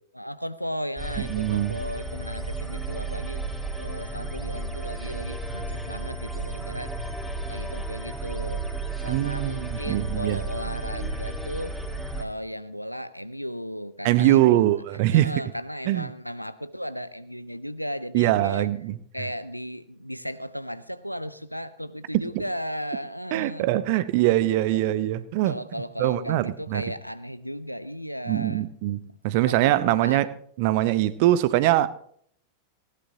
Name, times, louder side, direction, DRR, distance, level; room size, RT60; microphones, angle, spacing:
voice 1, 0.1-3.4 3.8-7.1 7.5-8.6 9.0-11.7 12.1-14.7 15.1-18.7 19.1-23.6 24.7-24.9 25.4-28.7 29.4-30.2, equal, 90° left, 0.6 m, -35 dB
sound 1, 1.0-12.2, right 2 dB, 5° right, 2.3 m, -33 dB
voice 2, 1.2-1.8 9.1-10.4 14.0-15.3 15.9-16.1 18.1-19.0 22.3-22.4 23.3-25.6 26.0-26.8 28.3-30.3 30.6-31.9, right 14 dB, 50° right, 0.8 m, -22 dB
19.0 x 17.0 x 2.9 m
figure-of-eight pair, 90°, 0 cm